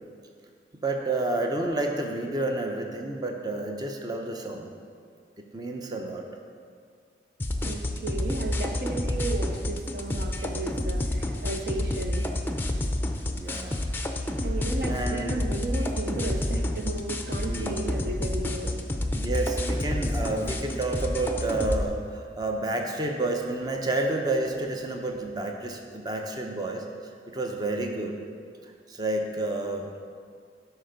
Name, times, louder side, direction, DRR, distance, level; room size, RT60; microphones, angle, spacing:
voice 1, 0.8-4.7 5.4-6.3 13.3-13.8 14.9-15.4 17.5-17.7 19.1-26.8 27.3-28.2 28.9-29.9, right 2 dB, 25° right, 2 dB, 0.7 m, -30 dB
sound 1, 7.4-21.8, left 1 dB, 10° left, 0.5 m, -29 dB
voice 2, 7.6-12.3 14.4-18.9, right 2 dB, 60° right, 4 dB, 0.7 m, -34 dB
12.0 x 5.7 x 5.1 m, 2.2 s
head